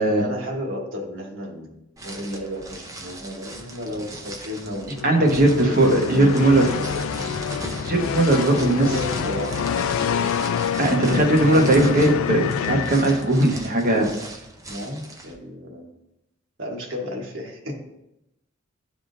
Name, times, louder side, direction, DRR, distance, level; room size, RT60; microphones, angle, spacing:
voice 1, 0.2-1.7 2.0-5.1 5.6-7.2 8.5-10.1 11.0-11.3 14.7-15.9 16.6-17.8, left 1 dB, 70° right, 0 dB, 1.2 m, -33 dB
sound 1, 2.0-15.3, right 2 dB, 15° right, 0.6 m, -38 dB
sound 2, 4.9-13.6, left 7 dB, 85° left, 0.3 m, -27 dB
voice 2, 5.0-6.7 7.8-8.9 10.8-14.1, right 2 dB, 45° right, 1 dB, 1.0 m, -18 dB
10.5 x 3.6 x 2.6 m, 0.87 s
head